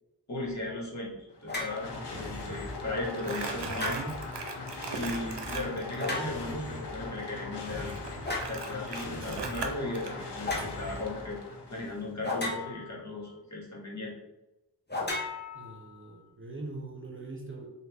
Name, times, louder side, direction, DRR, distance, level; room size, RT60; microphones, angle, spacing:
voice 1, 0.3-4.1 4.9-7.9 8.5-11.4 11.7-14.2, left 2 dB, 40° left, -4 dB, 1.1 m, -36 dB
sound 1, 1.3-12.2, left 2 dB, 80° left, 0.7 m, -40 dB
sound 2, 1.5-1.8 3.7-4.3 6.0-6.6 8.2-8.6 10.4-10.7 12.2-13.0 14.9-16.0, left 2 dB, 25° left, 0.8 m, -34 dB
Crumpling crinkling, 3.2-6.2 7.9-10.1, right 4 dB, 80° right, 0.6 m, -39 dB
voice 2, 15.5-17.7, right 2 dB, 30° right, -1 dB, 0.6 m, -42 dB
3.1 x 2.4 x 3.4 m, 1.0 s
wide cardioid pair, 45°, 41 cm